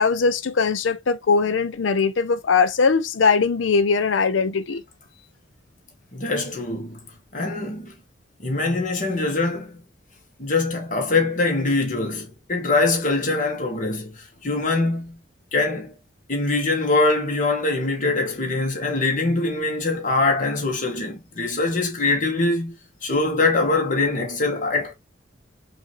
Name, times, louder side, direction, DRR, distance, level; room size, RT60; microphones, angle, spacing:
voice 1, 0.0-4.8, left 5 dB, 80° left, 0.5 m, -20 dB
voice 2, 6.1-7.0 7.3-7.9 8.4-9.8 10.4-15.2 15.5-15.9 16.3-22.7 23.0-24.9, left 3 dB, 45° left, 1.4 m, -23 dB
4.9 x 2.7 x 3.0 m
head